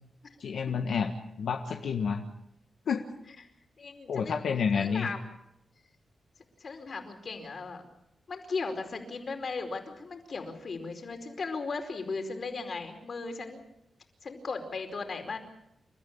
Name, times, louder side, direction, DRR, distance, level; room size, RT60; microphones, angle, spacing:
voice 1, 0.4-1.1 1.4-2.2 2.9-3.0 4.1-5.1, left 6 dB, 80° left, 3 dB, 1.6 m, -29 dB
voice 2, 3.8-4.3 4.7-5.2 6.6-7.8 8.3-13.6 14.2-15.4, left 4 dB, 50° left, 5 dB, 4.7 m, -36 dB
30.0 x 14.0 x 8.8 m, 0.84 s
wide cardioid pair, 105°, 0 cm